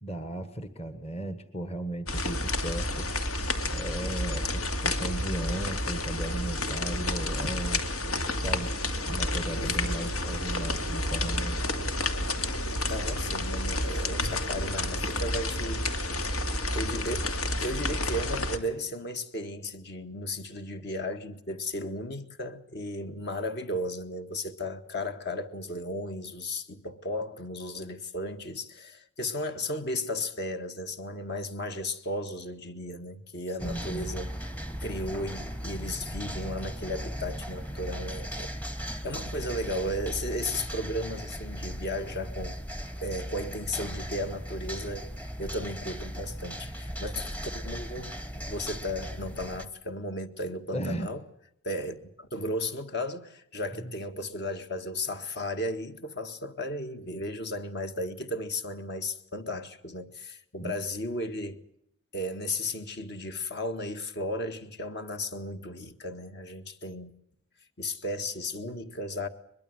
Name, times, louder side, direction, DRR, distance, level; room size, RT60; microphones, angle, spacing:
voice 1, 0.0-3.1 3.6-7.8 8.4-8.7 9.1-11.9 33.6-34.2 50.7-51.1 53.8-53.9 60.6-60.7, right 1 dB, 30° left, 1.5 m, -36 dB
sound 1, 2.1-18.6, left 1 dB, 75° left, 2.5 m, -30 dB
voice 2, 9.6-10.2 12.9-15.9 16.7-17.3 17.6-34.3 34.8-38.5 39.0-42.6 43.0-45.1 45.4-51.2 51.6-61.6 62.1-67.1 67.8-69.3, left 1 dB, 50° left, 1.8 m, -35 dB
sound 2, 33.6-49.7, equal, 5° left, 1.1 m, -37 dB
23.0 x 22.0 x 7.9 m
head